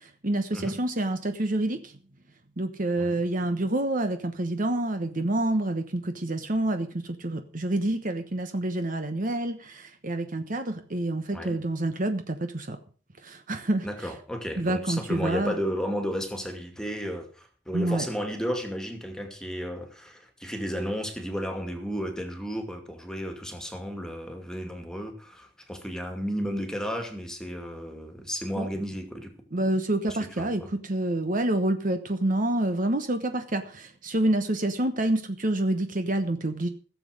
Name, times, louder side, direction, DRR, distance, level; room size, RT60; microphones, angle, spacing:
voice 1, 0.0-2.0 2.6-12.8 13.2-14.1 14.6-15.6 17.7-18.1 28.6-28.7 29.5-36.7, right 1 dB, 45° right, 8 dB, 1.2 m, -28 dB
voice 2, 13.8-29.3 30.1-30.7, equal, 5° left, 5 dB, 2.3 m, -33 dB
16.0 x 7.5 x 6.5 m, 0.41 s
head